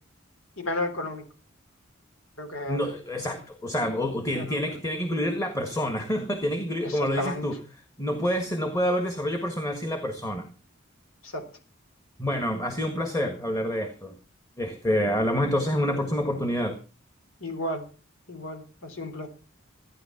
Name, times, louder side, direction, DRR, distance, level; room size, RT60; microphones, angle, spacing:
voice 1, 0.6-1.2 2.4-2.9 4.4-4.6 6.8-7.4 11.2-11.4 17.4-17.8 18.3-19.3, left 1 dB, 90° left, 6 dB, 3.6 m, -33 dB
voice 2, 2.7-7.6 8.0-10.5 12.2-14.2 14.6-16.7, equal, 15° left, 6 dB, 1.6 m, -27 dB
15.0 x 10.0 x 5.9 m, 0.35 s
head